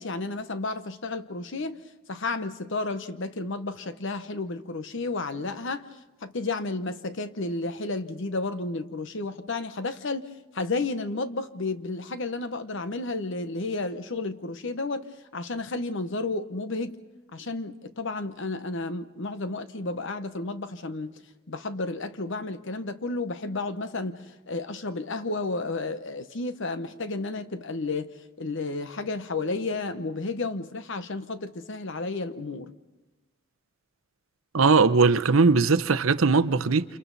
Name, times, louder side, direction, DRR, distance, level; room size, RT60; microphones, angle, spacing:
voice 1, 0.0-1.8 2.1-5.9 6.2-17.0 17.3-21.2 21.5-28.1 28.4-32.7, left 3 dB, 65° left, 1.0 m, -32 dB
voice 2, 34.5-36.8, right 4 dB, 80° right, 0.8 m, -20 dB
29.0 x 27.5 x 4.1 m
head